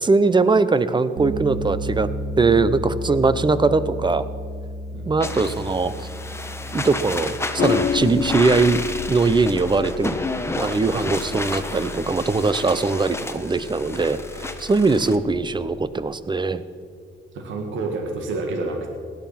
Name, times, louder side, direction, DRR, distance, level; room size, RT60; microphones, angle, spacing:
voice 1, 0.0-2.1 2.4-4.2 5.1-5.9 6.7-8.8 9.1-10.2 10.5-16.6, right 3 dB, 25° right, 14 dB, 0.8 m, -21 dB
Bass guitar, 1.2-10.8, equal, 45° right, 2.5 m, -33 dB
sound 1, 5.2-15.2, left 2 dB, 15° left, 1.1 m, -31 dB
sound 2, 7.6-16.1, left 7 dB, 45° left, 0.7 m, -32 dB
voice 2, 17.3-18.9, right 3 dB, 75° right, 2 dB, 2.1 m, -29 dB
17.5 x 11.0 x 5.9 m, 2.2 s
cardioid pair, 90°, 20 cm